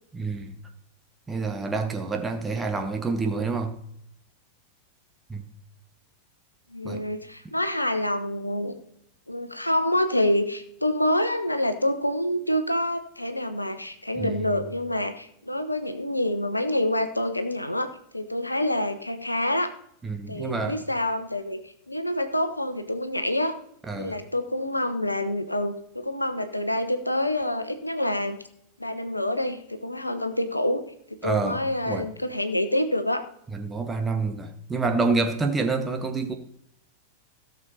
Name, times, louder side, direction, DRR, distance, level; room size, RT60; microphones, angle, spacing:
voice 1, 0.1-0.5 1.3-3.8 5.3-5.4 6.8-7.0 14.2-14.6 20.0-20.8 23.9-24.2 31.2-31.6 31.9-32.1 33.5-36.3, right 4 dB, 15° right, 1.6 m, -28 dB
voice 2, 6.7-8.8 9.3-17.9 18.1-19.7 20.3-21.6 21.9-23.6 23.9-28.4 28.8-30.8 31.2-33.2, left 1 dB, 85° left, 1.0 m, -27 dB
16.5 x 6.6 x 4.3 m
figure-of-eight pair, 90°, 0 cm